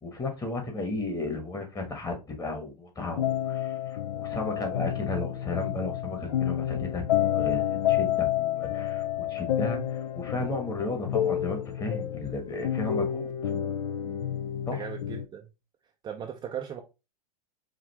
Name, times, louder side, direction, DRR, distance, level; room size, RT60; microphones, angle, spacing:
voice 1, 0.0-7.0 7.3-13.3 14.6-14.9, left 2 dB, 15° left, 1.3 m, -34 dB
sound 1, 3.0-15.2, left 11 dB, 65° left, 0.5 m, -29 dB
voice 2, 14.7-15.5 16.0-16.8, right 9 dB, 20° right, 0.5 m, -37 dB
5.0 x 2.6 x 3.3 m
hypercardioid pair, 100°, 21 cm